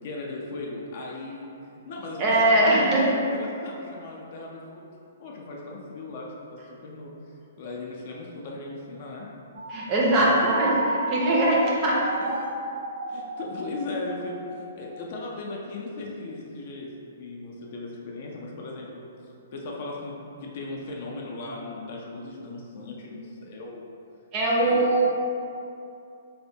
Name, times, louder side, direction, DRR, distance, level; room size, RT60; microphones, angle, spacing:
voice 1, 0.0-1.5 1.9-4.9 5.2-7.1 7.6-9.3 9.9-10.5 13.1-19.0 19.5-23.9 24.6-24.9, left 2 dB, 40° left, -2 dB, 0.4 m, -37 dB
voice 2, 2.2-3.0 9.7-12.0 24.3-25.1, right 1 dB, 25° right, -4 dB, 0.5 m, -21 dB
sound 1, 9.6-15.1, right 2 dB, 90° right, 0.3 m, -34 dB
4.0 x 2.1 x 2.6 m, 2.6 s
hypercardioid pair, 170°, 0 cm